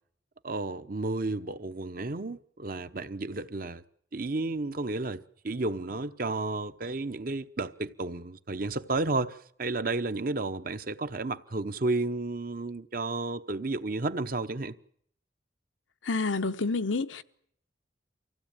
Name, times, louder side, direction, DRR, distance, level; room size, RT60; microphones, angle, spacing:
voice 1, 0.4-3.8 4.1-14.8, right 2 dB, 45° right, 0.9 m, -32 dB
voice 2, 16.0-17.2, left 3 dB, 85° left, 1.0 m, -28 dB
25.0 x 16.0 x 8.9 m
head